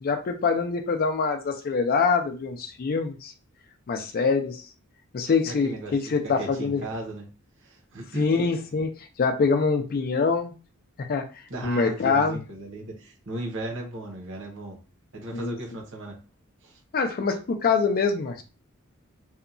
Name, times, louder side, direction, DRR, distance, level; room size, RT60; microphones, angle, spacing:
voice 1, 0.0-3.3 3.9-4.6 5.1-6.8 8.1-10.5 11.1-11.2 11.6-12.4 15.3-15.6 16.9-18.4, left 5 dB, 45° left, 5 dB, 0.4 m, -24 dB
voice 2, 5.4-6.0 6.4-7.3 7.6-8.3 11.5-14.8 15.1-16.2 16.6-16.8, right 2 dB, 60° right, 1 dB, 0.9 m, -36 dB
2.7 x 2.2 x 2.5 m, 0.32 s
head